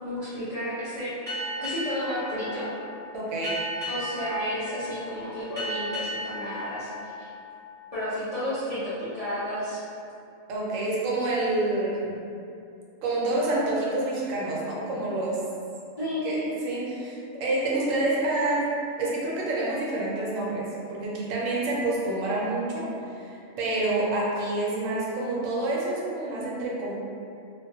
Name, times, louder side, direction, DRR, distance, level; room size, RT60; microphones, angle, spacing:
voice 1, 0.0-1.1 1.6-2.7 3.9-7.3 7.9-9.8 16.0-16.5, equal, 55° left, -13 dB, 0.4 m, -32 dB
Boat Water vehicle, 1.3-8.3, equal, 25° right, 0.8 m, -36 dB
voice 2, 3.1-3.7 10.5-12.2 13.0-15.4 16.2-18.7 19.0-22.9 23.1-26.9, right 2 dB, 85° right, -5 dB, 1.0 m, -28 dB
2.2 x 2.1 x 2.6 m, 2.6 s
omnidirectional pair, 1.3 m